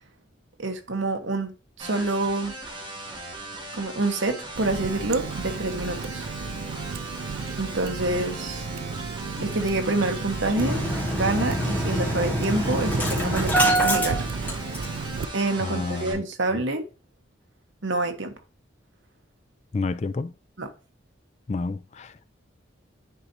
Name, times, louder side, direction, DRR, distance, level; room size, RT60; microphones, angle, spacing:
voice 1, 0.6-2.5 3.7-6.3 7.5-8.7 9.4-10.8 11.1-14.3 15.3-16.9 17.8-18.3 20.6-20.7, right 2 dB, 75° right, 1.2 m, -27 dB
sound 1, 1.8-16.1, right 2 dB, 25° right, 1.8 m, -38 dB
Water tap faucet, 4.6-15.3, right 5 dB, 90° right, 0.5 m, -34 dB
Engine starting, 10.5-15.1 15.4-15.5 15.8-16.0, right 1 dB, 10° left, 1.9 m, -25 dB
voice 2, 15.6-16.2 19.7-20.3 21.5-22.2, left 3 dB, 35° left, 0.3 m, -30 dB
10.0 x 4.0 x 2.8 m
head